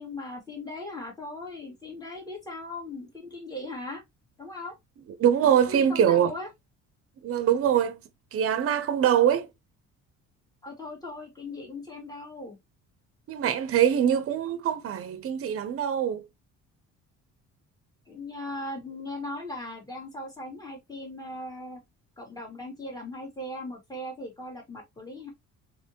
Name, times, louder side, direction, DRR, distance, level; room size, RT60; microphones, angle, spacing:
voice 1, 0.0-4.0 4.4-4.7 5.7-6.5 10.6-12.6 14.1-14.2 18.1-21.8 22.2-25.3, left 2 dB, 10° left, 1.9 m, -38 dB
voice 2, 5.2-6.3 7.2-8.0 8.3-9.5 13.3-16.3, right 9 dB, 50° right, 0.7 m, -23 dB
3.3 x 3.0 x 2.8 m
cardioid pair, 100°, 30 cm